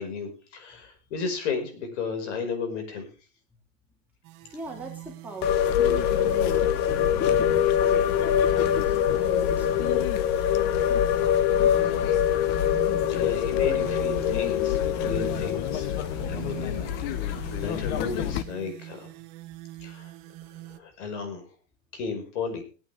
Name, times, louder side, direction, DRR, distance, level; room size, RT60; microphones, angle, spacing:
voice 1, 0.0-3.1 13.1-15.9 16.3-16.9 17.2-19.1 19.8-20.1 20.7-21.5 21.9-22.6, left 5 dB, 65° left, 6 dB, 5.7 m, -33 dB
sound 1, 4.2-20.8, right 16 dB, 40° right, 1.1 m, -42 dB
voice 2, 4.5-10.1, right 2 dB, 5° right, -2 dB, 2.4 m, -41 dB
sound 2, 5.4-18.4, left 10 dB, 25° left, 0.6 m, -24 dB
21.0 x 9.1 x 3.6 m, 0.35 s
supercardioid pair, 150°, 39 cm